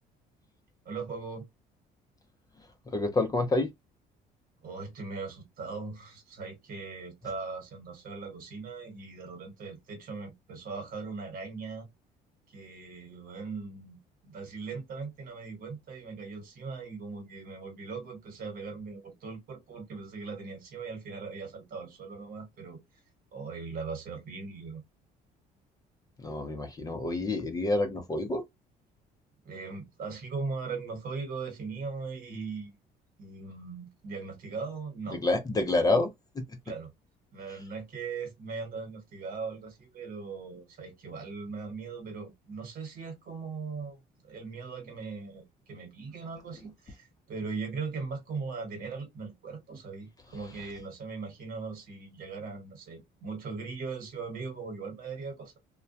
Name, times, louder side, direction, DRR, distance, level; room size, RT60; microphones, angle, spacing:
voice 1, 0.8-1.5 4.6-11.9 12.5-22.8 23.3-24.8 29.4-32.7 33.2-35.2 36.6-36.9 37.3-55.6, right 4 dB, 60° right, 1.2 m, -39 dB
voice 2, 2.9-3.7 26.2-28.4 35.1-36.4, left 2 dB, 20° left, 0.5 m, -28 dB
2.2 x 2.2 x 2.6 m
cardioid pair, 110°, 17 cm